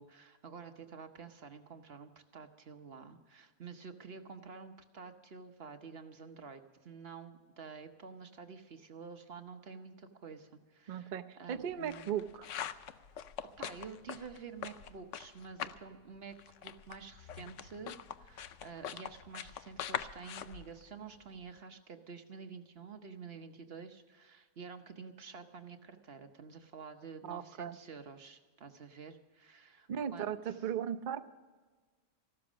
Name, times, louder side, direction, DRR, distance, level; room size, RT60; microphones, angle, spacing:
voice 1, 0.0-12.1 13.6-16.4 16.6-30.6, right 5 dB, 45° right, 7 dB, 0.9 m, -49 dB
voice 2, 10.9-12.5 27.3-27.8 29.9-31.3, right 8 dB, 65° right, 7 dB, 0.4 m, -37 dB
sound 1, 11.5-15.9 16.2-21.5, left 9 dB, 65° left, 0.7 m, -43 dB
15.0 x 12.5 x 6.1 m, 1.4 s
omnidirectional pair, 1.8 m